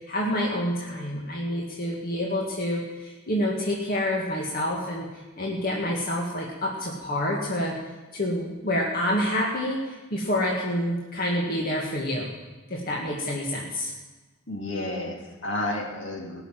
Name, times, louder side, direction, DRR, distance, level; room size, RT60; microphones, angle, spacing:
voice 1, 0.0-5.1 5.4-7.8 8.1-12.3 12.7-13.9, left 1 dB, 45° left, -2 dB, 2.0 m, -28 dB
voice 2, 14.5-16.4, left 1 dB, 65° left, 0 dB, 2.7 m, -31 dB
17.5 x 7.0 x 9.1 m, 1.2 s
head